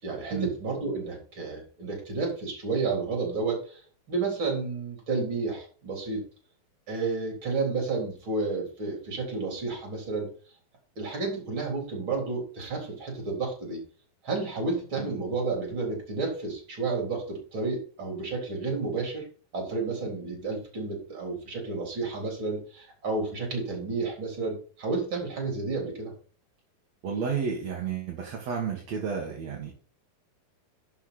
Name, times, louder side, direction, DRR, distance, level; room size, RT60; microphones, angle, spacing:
voice 1, 0.0-3.8 4.1-6.2 6.9-10.3 11.0-13.8 14.2-19.3 19.5-26.1, right 3 dB, 35° right, 0 dB, 4.2 m, -31 dB
voice 2, 27.0-29.7, right 6 dB, 50° right, 1 dB, 2.4 m, -31 dB
11.5 x 6.3 x 4.2 m, 0.40 s
omnidirectional pair, 4.4 m